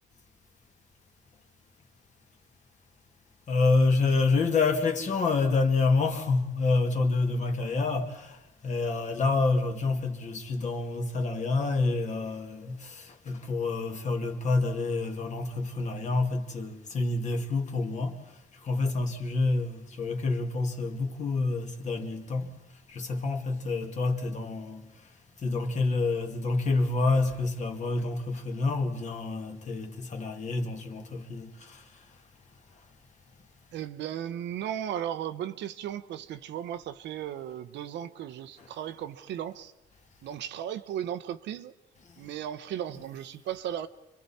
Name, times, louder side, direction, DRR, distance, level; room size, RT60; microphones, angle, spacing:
voice 1, 3.5-18.2 18.6-22.5 22.9-24.8 25.4-31.8 38.6-38.7, left 3 dB, 40° left, 2.2 m, -28 dB
voice 2, 33.7-39.7 40.2-41.7 42.2-43.9, right 10 dB, 75° right, 1.0 m, -36 dB
30.0 x 24.0 x 4.3 m
cardioid pair, 145°, 19 cm